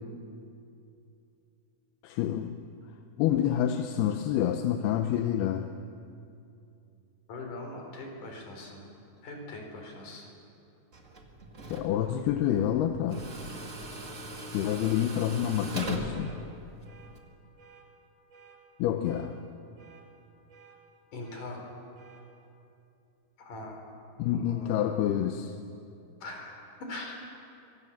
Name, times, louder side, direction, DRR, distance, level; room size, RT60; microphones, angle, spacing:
voice 1, 2.0-2.6 3.2-5.7 11.7-13.2 14.5-16.4 18.8-19.4 24.2-25.5, left 10 dB, 80° left, 6 dB, 2.8 m, -28 dB
voice 2, 7.3-8.8 9.2-10.2 21.1-21.6 23.4-23.8 24.3-24.7 26.2-27.2, left 2 dB, 55° left, 2 dB, 5.4 m, -41 dB
Tools, 10.9-17.2, right 2 dB, 25° right, 1.7 m, -40 dB
sound 1, 14.7-14.9 15.4-15.7 16.1-16.4 16.8-17.1 17.6-17.8 18.3-18.6 19.0-19.3 19.8-20.0 20.5-20.8 21.2-21.5 21.9-22.2, right 6 dB, 75° right, 6.6 m, -55 dB
25.5 x 24.5 x 7.3 m, 2.6 s
omnidirectional pair, 4.5 m